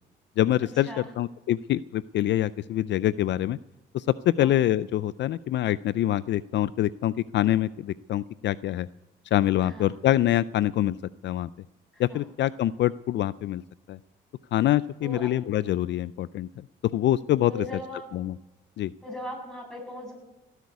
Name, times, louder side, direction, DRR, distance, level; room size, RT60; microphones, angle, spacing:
voice 1, 0.4-3.6 3.9-8.9 9.3-11.0 11.2-11.5 12.0-13.6 13.9-14.0 14.5-16.6 16.9-17.6 18.1-18.4 18.8-18.9, left 13 dB, 65° left, 17 dB, 0.4 m, -25 dB
voice 2, 9.6-10.0 11.9-12.2 15.0-15.3 17.5-18.1 19.0-20.1, left 1 dB, 5° left, -1 dB, 7.9 m, -38 dB
17.0 x 8.2 x 9.5 m, 1.0 s
cardioid pair, 90°, 20 cm